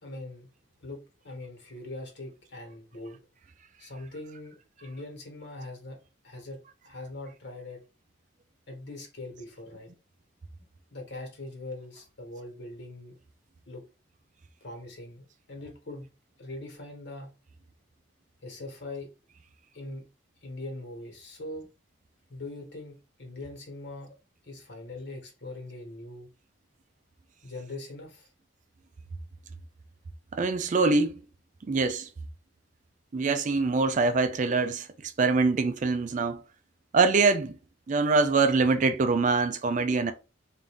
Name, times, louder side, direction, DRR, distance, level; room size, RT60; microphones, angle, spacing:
voice 1, 0.0-0.5 0.8-3.2 3.8-6.0 6.2-6.6 6.8-7.8 8.7-9.9 10.9-13.2 13.7-13.8 14.6-16.1 16.4-17.3 18.4-19.1 19.7-20.1 20.4-21.7 22.3-24.2 24.4-26.3 27.4-28.3, left 2 dB, 60° left, 1.4 m, -41 dB
voice 2, 30.3-31.2 31.7-32.1 33.1-36.4 36.9-37.6 37.9-40.1, right 4 dB, 40° right, 0.4 m, -24 dB
3.5 x 2.6 x 3.5 m
head